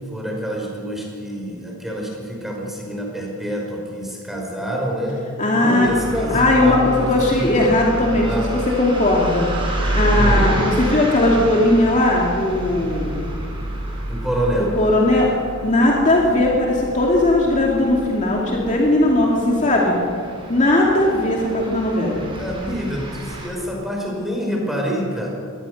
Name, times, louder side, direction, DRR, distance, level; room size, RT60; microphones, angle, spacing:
voice 1, 0.1-5.2 5.5-7.6 8.2-8.6 10.1-10.5 14.1-14.8 22.0-25.3, equal, ahead, -2 dB, 5.1 m, -26 dB
voice 2, 5.4-5.9 6.3-9.5 9.9-13.1 14.8-15.3 15.6-20.0 20.5-22.2, left 1 dB, 35° left, -2 dB, 2.7 m, -18 dB
sound 1, 5.8-23.5, right 1 dB, 25° right, 4.9 m, -28 dB
23.5 x 18.5 x 6.6 m, 2.4 s
head